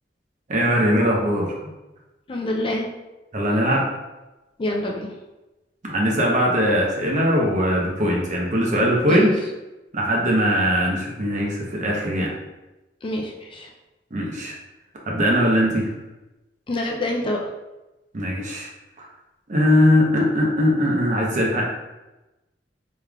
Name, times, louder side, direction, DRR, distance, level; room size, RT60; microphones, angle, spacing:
voice 1, 0.5-1.5 3.3-3.8 5.8-9.4 9.9-12.3 14.1-14.5 15.1-15.9 18.1-18.7 19.0-19.1 19.5-21.6, equal, 45° right, -2 dB, 0.7 m, -20 dB
voice 2, 2.3-2.9 4.6-5.1 9.1-9.3 13.0-13.7 16.7-17.4, left 1 dB, 30° left, 0 dB, 0.4 m, -26 dB
3.4 x 3.3 x 2.3 m, 1.0 s
head